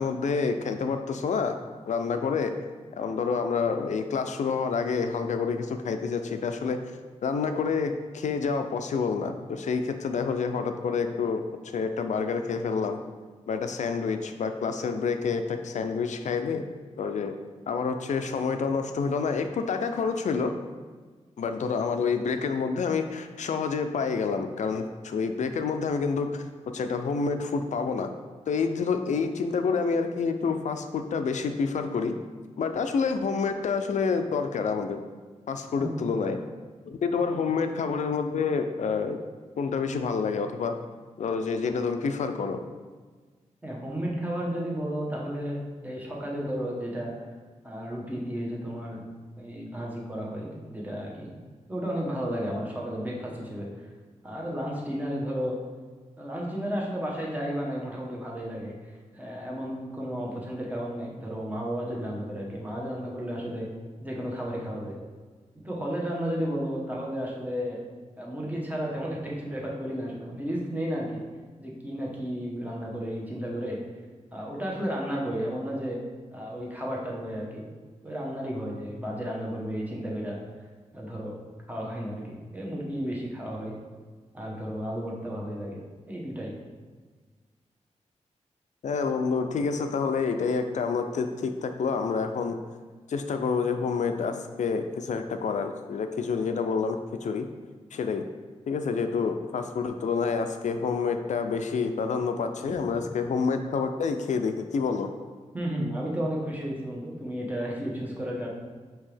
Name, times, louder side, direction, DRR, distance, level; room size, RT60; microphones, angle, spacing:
voice 1, 0.0-1.6 1.9-2.5 3.0-6.8 7.2-13.0 13.5-16.7 17.0-17.3 17.7-20.5 21.4-26.5 26.7-28.1 28.5-32.1 32.6-35.0 35.5-36.4 36.9-39.2 39.6-40.8 41.2-42.6 88.8-92.6 93.1-97.5 97.9-98.2 98.7-105.1, left 5 dB, 75° left, 7 dB, 0.4 m, -28 dB
voice 2, 43.6-47.1 47.6-49.0 49.4-51.3 51.7-53.7 54.2-55.6 56.2-58.7 59.1-63.7 64.0-65.0 65.6-67.8 68.2-71.2 71.6-73.8 74.3-76.0 76.3-77.7 78.0-80.4 80.9-81.4 81.7-83.8 84.3-85.8 86.1-86.5 105.5-108.5, equal, 15° right, -3 dB, 1.0 m, -33 dB
5.4 x 2.9 x 3.3 m, 1.4 s
wide cardioid pair, 105°, 12 cm